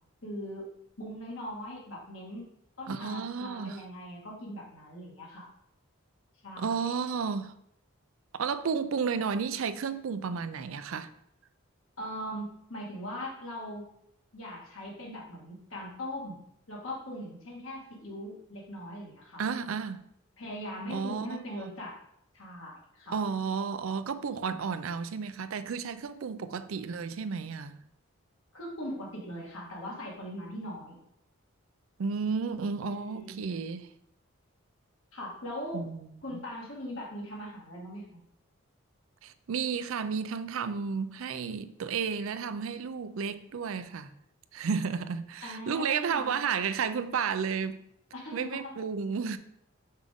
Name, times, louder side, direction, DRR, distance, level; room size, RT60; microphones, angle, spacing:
voice 1, 0.2-0.7 1.0-2.5 2.8-5.5 6.4-6.8 12.0-13.9 14.3-16.4 16.7-19.4 20.4-22.0 22.3-23.2 28.5-31.0 32.9-33.7 35.1-35.8 36.2-38.2 45.4-46.3 48.1-48.7, equal, 75° left, 2.1 m, -40 dB
voice 2, 2.9-3.8 6.6-7.6 8.3-11.1 19.4-20.1 20.9-21.7 23.1-27.8 32.0-33.9 35.7-36.4 39.2-44.1 44.5-47.8 48.3-49.4, right 6 dB, 75° right, 0.4 m, -32 dB
5.6 x 5.0 x 3.6 m
head